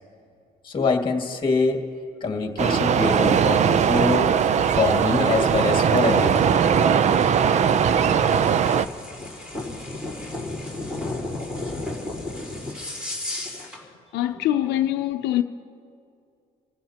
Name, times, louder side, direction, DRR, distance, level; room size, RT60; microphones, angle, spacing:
voice 1, 0.6-1.9 2.2-4.3 4.8-6.5, left 4 dB, 30° left, 2.1 m, -24 dB
sound 1, 2.6-8.9, right 7 dB, 45° right, 0.5 m, -20 dB
sound 2, 2.9-13.8, left 2 dB, 5° right, 4.2 m, -35 dB
voice 2, 14.1-15.4, left 13 dB, 85° left, 0.6 m, -23 dB
29.5 x 15.5 x 2.9 m
cardioid pair, 110°, 17 cm